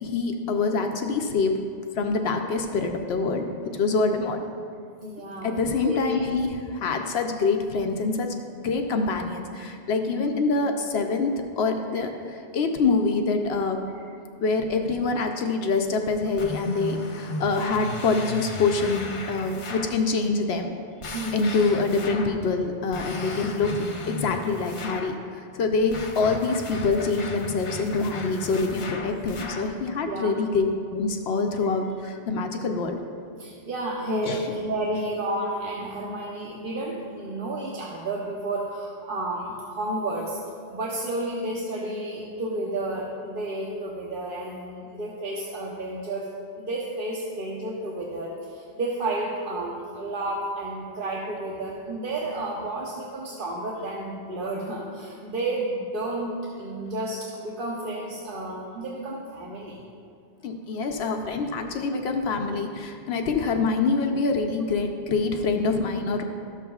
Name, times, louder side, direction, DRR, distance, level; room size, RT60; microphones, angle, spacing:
voice 1, 0.0-1.6 1.9-3.5 3.7-4.4 5.4-13.8 14.4-20.7 21.3-30.7 30.9-33.0 34.2-34.5 60.4-66.2, left 4 dB, 75° left, 4 dB, 0.8 m, -25 dB
voice 2, 5.0-5.5 5.8-6.2 10.1-10.4 11.9-12.0 13.9-14.0 21.1-21.8 30.1-30.4 32.3-32.6 33.4-40.4 40.7-46.3 46.6-59.8, right 1 dB, 55° right, -3 dB, 0.9 m, -31 dB
sound 1, 16.4-20.0 21.0-22.4 22.9-25.2 25.9-29.8, left 2 dB, 40° left, 0.5 m, -36 dB
13.0 x 7.2 x 2.3 m, 2.4 s
omnidirectional pair, 1.1 m